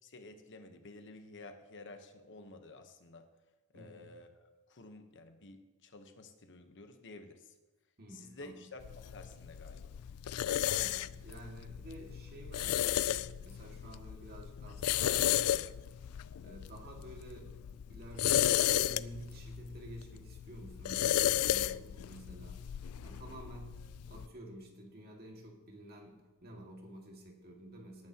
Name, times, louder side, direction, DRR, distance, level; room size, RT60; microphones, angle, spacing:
voice 1, 0.0-3.3 3.7-4.4 4.7-7.5 8.1-9.9, left 2 dB, 55° left, 7 dB, 1.1 m, -52 dB
voice 2, 3.7-4.1 8.0-8.6 10.4-15.8 16.4-17.6 17.9-28.1, right 1 dB, 45° right, 1 dB, 2.1 m, -50 dB
sound 1, 8.8-24.3, left 12 dB, 75° left, 0.3 m, -34 dB
18.5 x 9.4 x 2.9 m, 1.1 s
head